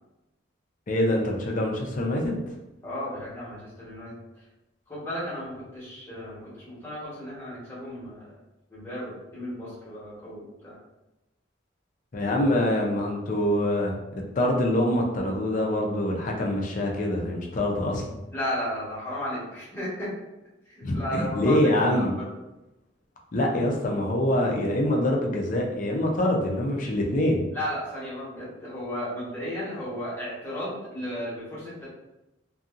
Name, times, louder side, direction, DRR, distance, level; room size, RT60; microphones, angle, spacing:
voice 1, 0.9-2.4 12.1-14.0 14.4-18.0 20.8-22.2 23.3-27.4, left 1 dB, 45° left, 0 dB, 0.5 m, -25 dB
voice 2, 2.8-4.1 4.9-8.3 8.7-10.7 18.3-20.1 20.8-21.6 21.9-22.2 27.5-31.9, equal, 15° left, -10 dB, 1.1 m, -34 dB
2.7 x 2.6 x 2.4 m, 0.98 s
head